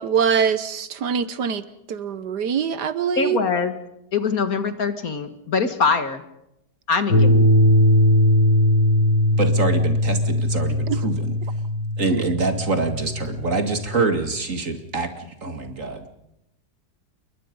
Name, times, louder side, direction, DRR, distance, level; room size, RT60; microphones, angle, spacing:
voice 1, 0.0-1.6 1.9-3.4 10.9-11.0 12.1-12.2, right 7 dB, 70° right, 14 dB, 1.6 m, -23 dB
voice 2, 3.2-3.7 4.1-6.2 6.9-7.5, left 5 dB, 55° left, 9 dB, 2.1 m, -23 dB
sound 1, 7.1-14.2, left 1 dB, 90° left, 2.8 m, -19 dB
voice 3, 9.4-11.4 12.0-16.1, right 3 dB, 45° right, 6 dB, 2.6 m, -25 dB
29.5 x 22.5 x 5.4 m, 0.85 s
omnidirectional pair, 1.9 m